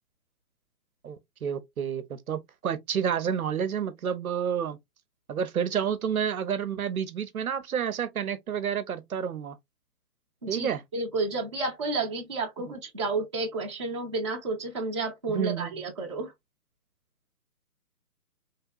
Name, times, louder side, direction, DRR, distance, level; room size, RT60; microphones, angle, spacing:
voice 1, 1.0-4.8 5.3-9.6 10.5-10.8 12.7-12.8 15.3-15.7, right 8 dB, 65° right, 0.7 m, -30 dB
voice 2, 10.4-16.3, right 3 dB, 20° right, 0.6 m, -31 dB
3.2 x 2.8 x 2.3 m
hypercardioid pair, 160°, 47 cm